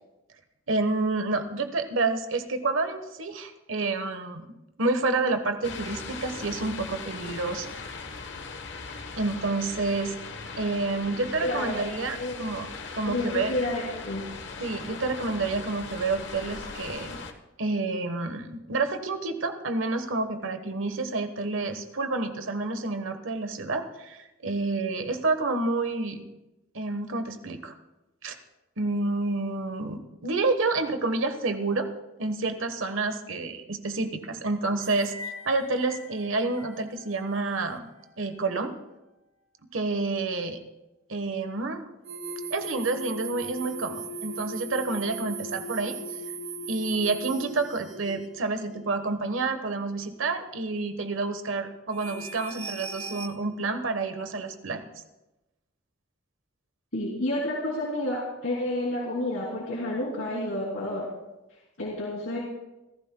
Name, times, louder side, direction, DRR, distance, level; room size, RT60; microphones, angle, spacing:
voice 1, 0.7-4.5 4.8-7.7 9.2-10.1 10.6-12.7 12.9-13.5 14.6-17.2 17.6-26.3 26.7-27.7 28.2-28.3 28.8-31.9 32.2-37.9 38.2-38.7 39.7-40.6 41.1-41.8 42.5-46.0 46.7-54.8, right 3 dB, 90° right, 8 dB, 1.2 m, -29 dB
sound 1, 5.6-17.3, left 4 dB, 60° left, 1.1 m, -39 dB
voice 2, 11.4-12.3 13.1-14.2 56.9-61.1 61.8-62.4, left 1 dB, 90° left, -5 dB, 3.0 m, -30 dB
sound 2, 34.8-35.4 35.8-36.0 36.6-36.7 42.1-48.1 48.6-48.8 49.3-49.5 50.0-50.1 51.9-53.3, right 3 dB, 35° right, 1.2 m, -38 dB
27.5 x 14.5 x 2.3 m, 0.99 s
head